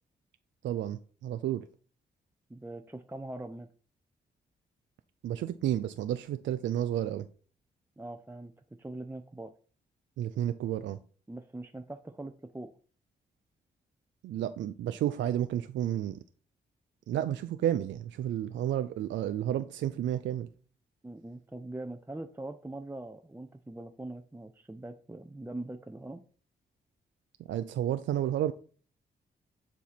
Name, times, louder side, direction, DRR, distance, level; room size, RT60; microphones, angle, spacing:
voice 1, 0.6-1.6 5.2-7.3 10.2-11.0 14.2-16.2 17.1-20.5 27.5-28.5, right 11 dB, 70° right, 0.4 m, -31 dB
voice 2, 2.5-3.7 8.0-9.5 11.3-12.7 21.0-26.2, right 2 dB, 10° right, 0.6 m, -42 dB
7.3 x 2.7 x 5.8 m
hypercardioid pair, 40°, 20 cm